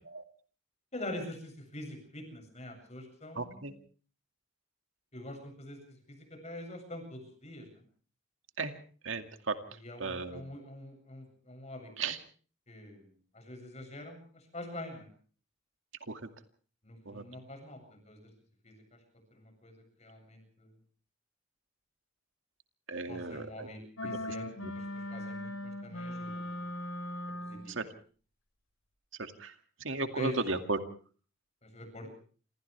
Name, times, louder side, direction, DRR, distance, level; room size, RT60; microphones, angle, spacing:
voice 1, 0.9-3.7 5.1-5.8 6.1-7.8 9.7-11.9 12.7-13.0 13.3-15.1 16.8-18.3 18.6-18.8 19.3-20.7 23.1-26.6 27.5-27.7 30.1-30.4 31.6-32.2, left 1 dB, 35° left, 5 dB, 7.9 m, -45 dB
voice 2, 3.4-3.7 8.6-8.7 9.0-9.6 10.0-10.4 12.0-12.2 16.1-16.2 17.1-17.2 22.9-23.7 24.0-24.3 24.6-24.7 27.8-27.9 29.2-29.5 29.8-30.8, right 3 dB, 70° right, 7 dB, 2.3 m, -35 dB
sound 1, 24.0-27.8, left 1 dB, 90° left, 5.4 m, -39 dB
28.5 x 27.0 x 3.4 m, 0.43 s
head